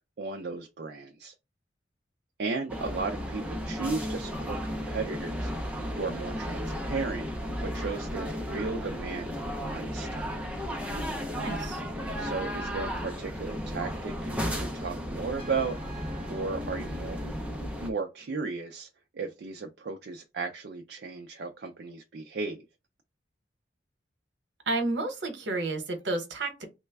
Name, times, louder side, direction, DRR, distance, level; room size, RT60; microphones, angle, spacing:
voice 1, 0.2-1.3 2.4-7.3 7.6-9.3 9.6-10.3 12.2-15.8 16.3-17.2 17.8-18.9 19.1-22.6, right 4 dB, 60° right, 0.4 m, -35 dB
sound 1, 2.7-17.9, equal, 5° right, 0.5 m, -34 dB
voice 2, 11.3-11.8 24.7-26.6, right 2 dB, 80° right, 0.9 m, -31 dB
Trumpet, 15.4-18.0, right 1 dB, 30° left, 1.7 m, -51 dB
3.1 x 2.1 x 3.3 m
head